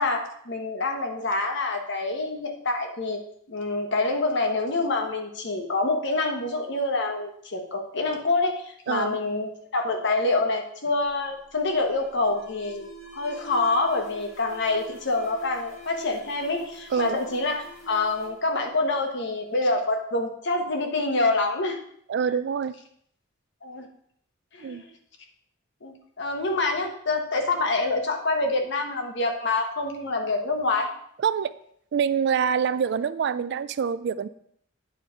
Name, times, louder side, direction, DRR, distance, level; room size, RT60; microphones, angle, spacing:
voice 1, 0.0-3.2 3.5-21.8 23.6-23.9 24.5-24.9 25.8-30.9, left 2 dB, 60° left, 4 dB, 1.1 m, -26 dB
voice 2, 8.9-9.2 16.9-17.2 22.1-22.7 24.6-24.8 31.2-31.5 31.9-34.3, right 7 dB, 55° right, 15 dB, 0.3 m, -25 dB
Alarm, 10.9-19.5, right 2 dB, 80° left, 1.8 m, -47 dB
9.2 x 4.2 x 4.8 m, 0.68 s
head